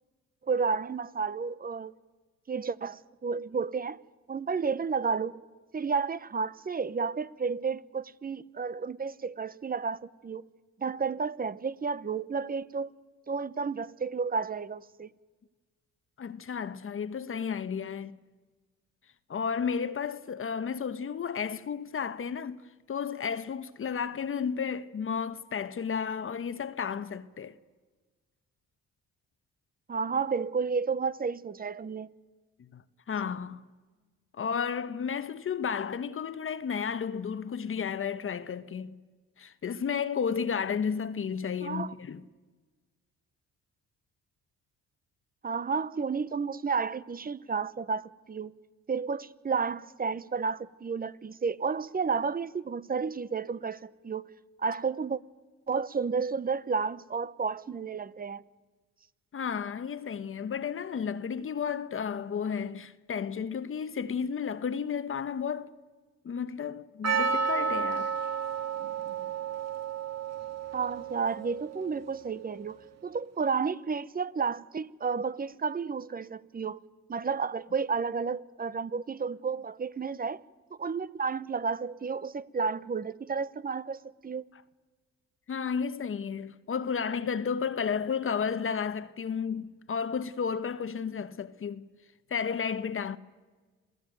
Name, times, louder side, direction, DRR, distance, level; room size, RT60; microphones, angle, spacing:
voice 1, 0.4-1.9 2.5-4.0 4.3-5.4 5.7-10.5 10.8-12.9 13.3-15.1 29.9-32.1 41.6-41.9 45.4-48.5 48.9-54.3 54.6-55.2 55.7-58.4 70.7-76.8 77.1-80.4 80.8-84.4, right 5 dB, 30° right, 0.9 m, -32 dB
voice 2, 16.2-18.2 19.3-22.6 22.9-27.6 32.7-32.8 33.1-33.6 34.4-39.0 39.4-42.2 59.3-65.7 66.2-68.1 85.5-91.9 92.3-93.2, left 6 dB, 45° left, 1.1 m, -32 dB
Percussion, 67.0-72.0, right 6 dB, 60° right, 2.3 m, -32 dB
27.0 x 17.5 x 9.1 m
cardioid pair, 90°, 30 cm